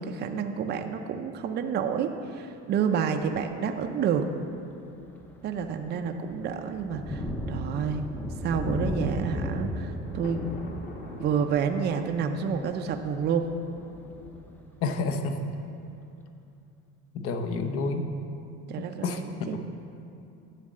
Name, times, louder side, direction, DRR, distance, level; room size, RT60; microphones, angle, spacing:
voice 1, 0.0-4.3 5.4-8.0 8.4-10.4 11.2-13.5 18.7-19.6, right 7 dB, 35° right, 5 dB, 0.5 m, -29 dB
Thunder, 3.2-3.5 4.1-4.3 4.7-15.3, left 1 dB, 5° left, 0.6 m, -36 dB
Thunder 2, 10.0-14.1, left 1 dB, 30° left, 1.2 m, -44 dB
voice 2, 14.8-15.6 17.1-18.1 18.8-19.6, left 3 dB, 50° left, 6 dB, 0.8 m, -30 dB
11.0 x 4.1 x 7.6 m, 2.7 s
cardioid pair, 145°, 30 cm